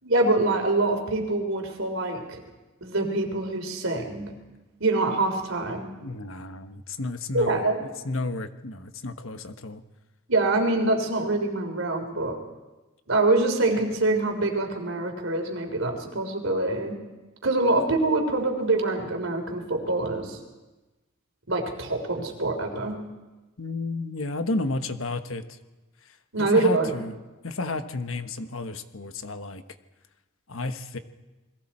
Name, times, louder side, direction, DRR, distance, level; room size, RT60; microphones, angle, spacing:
voice 1, 0.0-2.4 2.8-4.3 4.8-5.9 7.3-7.8 10.3-12.4 13.1-17.0 17.4-20.4 21.5-23.0 26.3-26.9, right 2 dB, 75° right, 4 dB, 3.6 m, -25 dB
voice 2, 6.0-7.6 8.0-9.8 23.6-25.6 26.4-27.1 27.4-29.6 30.5-31.0, left 2 dB, 75° left, 9 dB, 1.3 m, -32 dB
29.0 x 21.5 x 4.4 m, 1.1 s
head